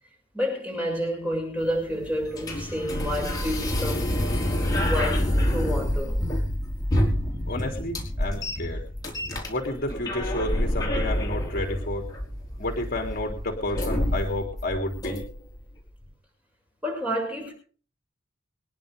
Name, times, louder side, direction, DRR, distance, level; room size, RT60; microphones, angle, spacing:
voice 1, 0.3-4.1 4.9-6.3 16.8-17.5, equal, 5° right, 0 dB, 6.6 m, -29 dB
sound 1, 1.6-15.6, left 1 dB, 20° left, 4.7 m, -28 dB
voice 2, 7.5-8.9 9.5-12.1 12.6-15.2, left 1 dB, 45° left, 2 dB, 3.1 m, -31 dB
25.5 x 10.5 x 3.6 m, 0.41 s
head